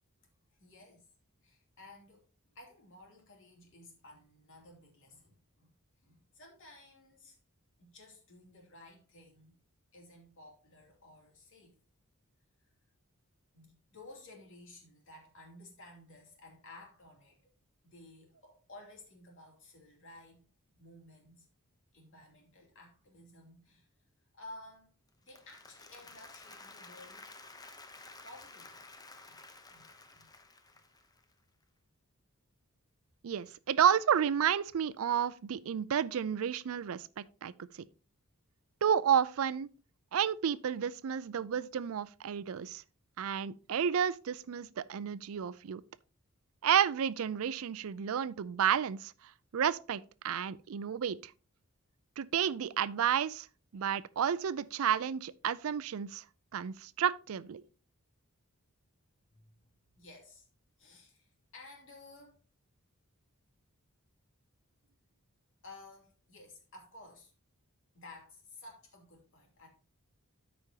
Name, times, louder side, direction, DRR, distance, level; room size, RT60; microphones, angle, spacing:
voice 1, 0.6-1.1 1.4-2.2 2.5-5.7 6.0-7.4 7.8-9.6 9.9-11.8 13.5-17.4 17.8-20.4 20.7-21.5 21.9-23.9 24.3-24.9 25.2-27.3 28.2-28.8 29.2-29.4 29.7-30.3 30.7-30.8 59.3-59.7 59.9-60.5 60.8-62.3 65.6-67.3 67.9-69.7, left 2 dB, 60° left, 2.7 m, -54 dB
Applause, 25.1-31.3, left 3 dB, 15° left, 0.8 m, -53 dB
voice 2, 33.2-37.5 38.8-39.7 40.1-42.8 43.2-45.8 46.6-51.3 52.2-53.5 53.7-56.2 56.5-57.6, right 8 dB, 65° right, 0.4 m, -31 dB
13.5 x 5.2 x 2.8 m
head